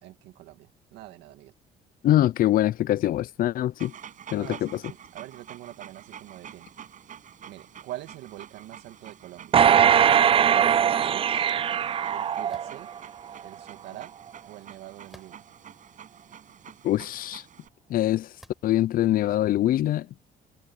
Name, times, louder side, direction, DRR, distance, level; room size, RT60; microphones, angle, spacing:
voice 1, 0.0-1.5 4.4-6.7 7.4-9.6 10.1-11.4 12.1-12.9 13.4-14.1 14.4-15.4, right 15 dB, 85° right, 2.3 m, -44 dB
voice 2, 2.0-3.9 4.3-4.7 16.8-17.4 17.9-18.3 18.6-20.1, left 13 dB, 60° left, 0.5 m, -23 dB
Dog, 3.8-17.7, right 9 dB, 50° right, 6.2 m, -47 dB
sound 1, 9.5-13.0 13.5-13.6, right 9 dB, 35° right, 0.4 m, -21 dB
sound 2, 12.5-12.8 15.1-15.6 16.3-16.4 18.4-18.8, equal, ahead, 6.8 m, -53 dB
cardioid pair, 110°, 17 cm